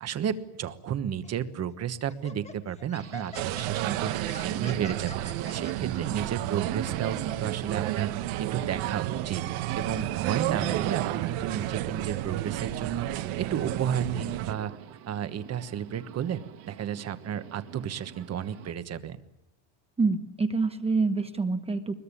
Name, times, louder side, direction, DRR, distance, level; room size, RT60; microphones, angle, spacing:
voice 1, 0.0-4.1 4.4-5.1 5.5-9.4 9.7-13.1 13.4-14.7 15.1-19.2, right 9 dB, 30° right, 11 dB, 1.3 m, -32 dB
Laughter, 1.2-1.4 2.1-5.7, left 2 dB, 15° left, 1.6 m, -45 dB
Subway metro underground, 2.9-18.7, right 11 dB, 50° right, 2.1 m, -44 dB
sound 1, 3.3-14.5, right 14 dB, 70° right, 1.5 m, -31 dB
voice 2, 20.0-21.9, right 4 dB, 10° right, 8 dB, 0.9 m, -27 dB
23.0 x 21.5 x 10.0 m, 0.85 s
cardioid pair, 165°, 50 cm